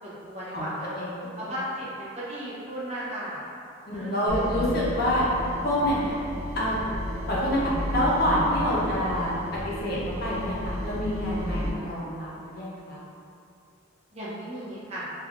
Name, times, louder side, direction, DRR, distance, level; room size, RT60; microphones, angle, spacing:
voice 1, 0.0-0.9 1.4-3.4 3.9-4.2 11.8-11.9 14.1-15.1, equal, 30° right, -9 dB, 0.6 m, -36 dB
voice 2, 0.9-1.6 3.8-5.3 5.6-6.2 6.5-6.8 7.3-7.6 7.9-13.0, equal, 50° left, -7 dB, 0.6 m, -27 dB
sound 1, 4.3-11.7, equal, 85° right, 0.4 m, -33 dB
3.2 x 2.3 x 2.4 m, 2.5 s
head